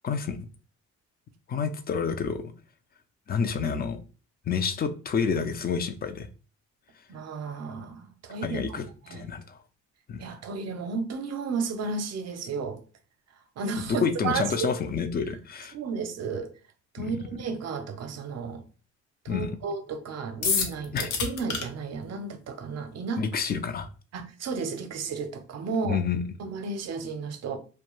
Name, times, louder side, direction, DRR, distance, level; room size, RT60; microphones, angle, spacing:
voice 1, 0.0-0.5 1.5-2.5 3.3-4.0 4.5-6.3 8.4-8.8 9.1-9.6 10.1-10.2 13.9-15.7 17.0-17.3 19.3-19.5 20.9-21.1 23.2-23.9 25.9-26.2, left 6 dB, 30° left, 0.4 m, -29 dB
voice 2, 7.1-8.8 9.1-9.3 10.2-12.8 13.6-14.7 15.7-16.5 16.9-18.6 19.2-23.2 24.1-26.0 26.4-27.6, right 4 dB, 60° right, 0.6 m, -33 dB
sound 1, 20.4-21.6, left 5 dB, 75° left, 0.7 m, -27 dB
2.2 x 2.2 x 3.0 m
cardioid pair, 90°, 30 cm